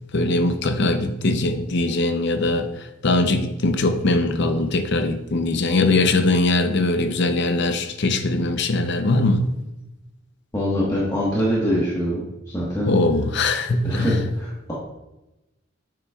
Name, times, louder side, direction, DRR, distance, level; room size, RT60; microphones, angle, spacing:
voice 1, 0.1-9.4 12.8-14.2, left 2 dB, 55° left, 7 dB, 0.6 m, -21 dB
voice 2, 10.5-12.2 12.5-12.9 13.8-14.7, equal, 15° left, -7 dB, 1.3 m, -23 dB
8.6 x 6.9 x 2.4 m, 0.96 s
head